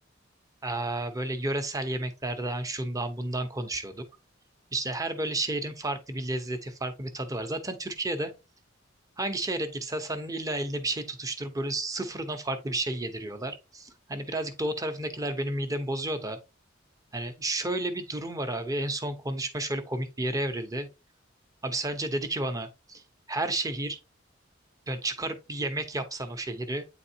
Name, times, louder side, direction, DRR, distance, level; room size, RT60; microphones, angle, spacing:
voice 1, 0.6-4.0 4.7-8.3 9.2-16.4 17.1-20.9 21.6-23.0 23.3-24.0 24.9-26.8, right 2 dB, 20° right, 0.9 m, -31 dB
9.0 x 4.1 x 2.8 m
head